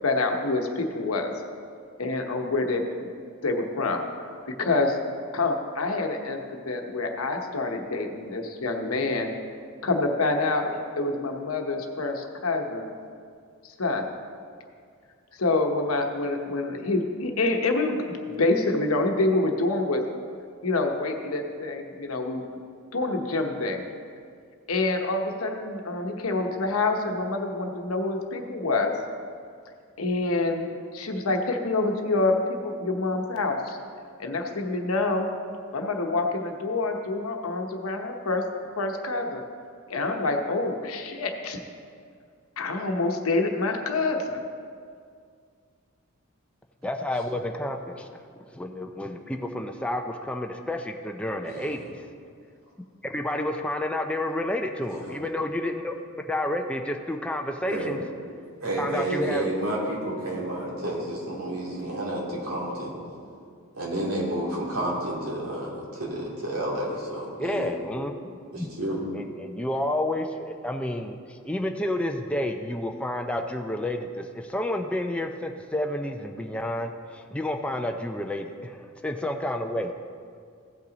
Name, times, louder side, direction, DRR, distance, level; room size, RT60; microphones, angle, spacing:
voice 1, 0.0-1.3 2.0-2.8 3.4-4.1 4.5-5.0 5.3-9.3 9.8-12.9 13.8-14.1 15.4-20.0 20.6-22.4 22.9-23.8 24.7-29.0 30.0-33.8 34.2-35.3 35.7-38.5 38.8-39.4 39.9-41.6 42.6-44.4, left 2 dB, 85° left, 3 dB, 1.0 m, -27 dB
voice 2, 46.8-48.1 48.5-52.0 53.0-55.9 56.3-58.0 58.8-59.4 67.4-68.7 69.1-79.9, left 1 dB, 5° left, 3 dB, 0.4 m, -30 dB
voice 3, 51.5-51.8 54.9-55.2 57.7-58.0 58.6-62.9 63.7-67.7 68.5-69.0, right 1 dB, 80° right, -5 dB, 2.7 m, -30 dB
15.5 x 5.7 x 4.0 m, 2.2 s
head